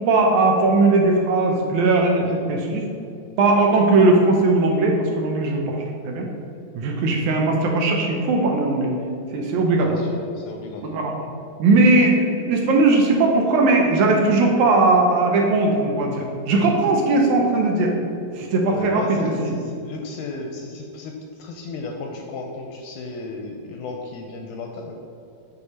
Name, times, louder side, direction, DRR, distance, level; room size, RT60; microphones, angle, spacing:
voice 1, 0.0-2.9 3.4-6.3 6.8-9.0 9.3-10.0 10.8-11.1 11.6-17.9 18.4-19.5, right 2 dB, 70° right, 1 dB, 1.9 m, -19 dB
voice 2, 9.8-11.0 18.7-25.0, left 3 dB, 80° left, 2 dB, 2.0 m, -34 dB
8.6 x 4.8 x 4.1 m, 2.5 s
omnidirectional pair, 4.0 m